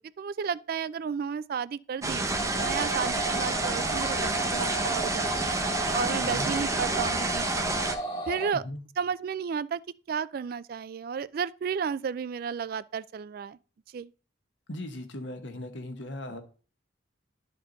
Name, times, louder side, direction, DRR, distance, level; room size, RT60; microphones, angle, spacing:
voice 1, 0.2-5.4 5.9-7.6 8.3-8.6 9.0-9.8 10.1-13.6 13.9-14.1, right 6 dB, 50° right, 0.3 m, -32 dB
sound 1, 2.0-8.0, right 2 dB, 15° right, 0.7 m, -29 dB
sound 2, 2.3-8.5, right 1 dB, 25° left, 1.5 m, -34 dB
voice 2, 6.2-6.5 8.5-8.8 14.7-16.4, left 1 dB, 70° left, 1.2 m, -38 dB
11.5 x 4.3 x 3.9 m
head